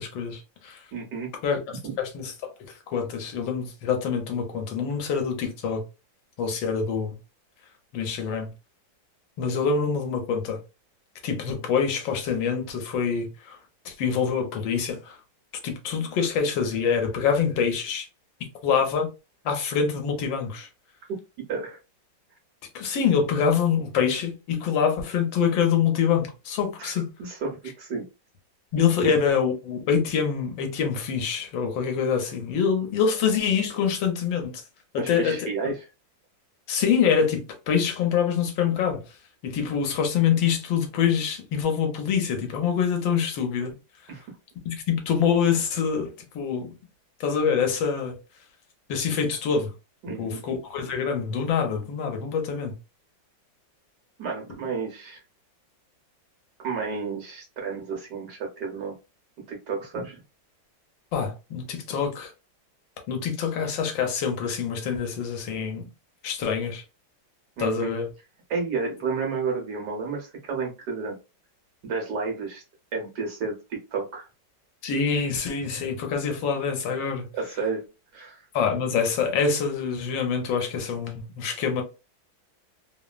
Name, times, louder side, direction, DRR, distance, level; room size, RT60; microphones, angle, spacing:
voice 1, 0.0-0.8 1.4-1.6 2.0-2.3 2.9-5.8 6.4-7.2 7.9-8.5 9.4-10.6 11.2-13.6 13.8-15.2 15.6-18.1 18.6-19.1 19.4-20.7 22.7-27.1 28.7-34.6 34.9-35.5 36.7-39.0 39.4-43.7 44.6-46.7 47.2-48.2 48.9-49.7 50.2-52.7 61.1-62.3 63.1-65.9 66.2-66.8 67.6-68.1 74.8-77.3 78.5-81.8, left 6 dB, 80° left, 1.5 m, -25 dB
voice 2, 0.9-1.3 1.7-1.9 21.5-21.8 26.8-26.9 27.2-28.0 29.0-29.1 35.0-35.7 44.1-44.2 50.0-50.4 54.2-55.2 56.6-58.9 59.5-60.2 67.6-67.9 68.5-71.2 71.8-72.6 72.9-74.3 77.3-77.9 78.1-78.4, right 4 dB, 60° right, 1.4 m, -31 dB
3.6 x 2.0 x 2.3 m
omnidirectional pair, 2.1 m